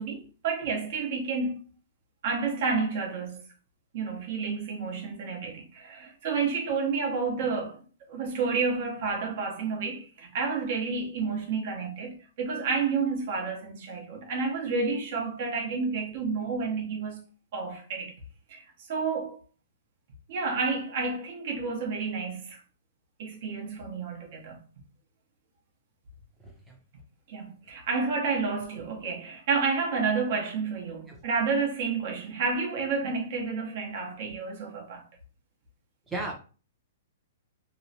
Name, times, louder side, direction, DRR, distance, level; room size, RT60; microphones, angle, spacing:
voice 1, 0.0-1.6 2.2-3.4 3.9-7.8 8.1-17.2 17.5-18.2 18.5-19.4 20.3-22.6 23.2-24.6 27.3-35.0, right 4 dB, 50° right, 0.8 m, -30 dB
voice 2, 26.4-26.8 31.1-31.2 36.1-36.3, right 2 dB, 5° right, 0.5 m, -35 dB
2.9 x 2.0 x 2.7 m
hypercardioid pair, 155°, 0 cm